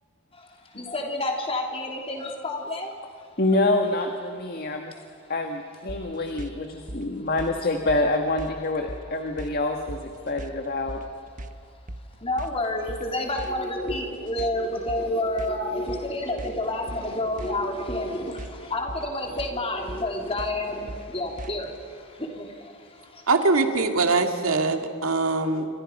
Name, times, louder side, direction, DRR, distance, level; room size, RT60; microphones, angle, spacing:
voice 1, 0.7-2.9 12.2-23.2, left 1 dB, 25° left, 1 dB, 3.4 m, -29 dB
voice 2, 3.4-4.9 5.3-11.0, left 2 dB, 45° left, 4 dB, 1.6 m, -26 dB
sound 1, 5.9-21.8, right 1 dB, 40° right, 1.2 m, -40 dB
voice 3, 23.3-25.7, right 3 dB, 90° right, 5 dB, 2.2 m, -22 dB
28.5 x 25.0 x 5.4 m, 2.5 s
head